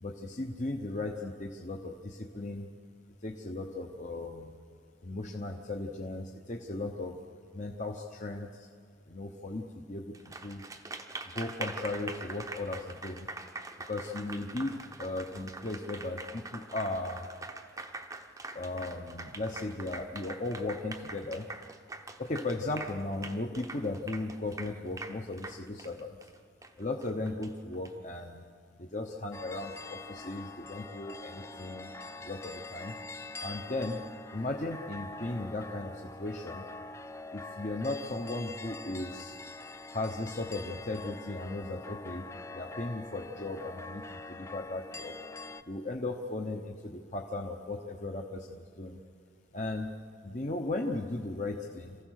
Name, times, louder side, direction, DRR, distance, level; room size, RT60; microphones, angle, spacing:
voice 1, 0.0-2.7 3.2-4.6 5.0-7.2 7.5-8.7 9.1-10.6 11.3-13.3 13.9-17.3 18.5-21.4 22.2-26.1 26.8-28.4 28.8-31.9 32.2-32.9 33.4-34.0 34.3-36.6 37.3-39.4 39.9-42.2 42.5-44.0 44.3-45.1 45.7-49.0 49.5-50.0 50.2-52.0, left 2 dB, 40° left, 1 dB, 1.0 m, -36 dB
Applause, 10.1-27.9, right 3 dB, 15° right, 0.8 m, -43 dB
sound 1, 29.3-45.6, left 3 dB, 15° left, 0.4 m, -44 dB
27.0 x 15.0 x 6.5 m, 2.1 s
head